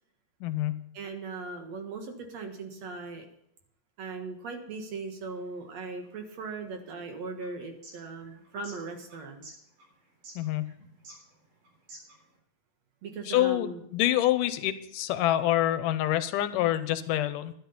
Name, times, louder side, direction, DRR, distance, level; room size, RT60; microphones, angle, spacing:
voice 1, 0.4-0.9 10.4-10.8 13.3-17.5, left 13 dB, 90° left, 12 dB, 2.4 m, -27 dB
voice 2, 0.9-3.3 4.0-9.5 13.0-13.8, right 4 dB, 60° right, 4 dB, 2.5 m, -39 dB
sound 1, 5.3-12.4, right 2 dB, 75° right, 5.5 m, -52 dB
12.0 x 11.0 x 5.5 m, 0.71 s
omnidirectional pair, 3.7 m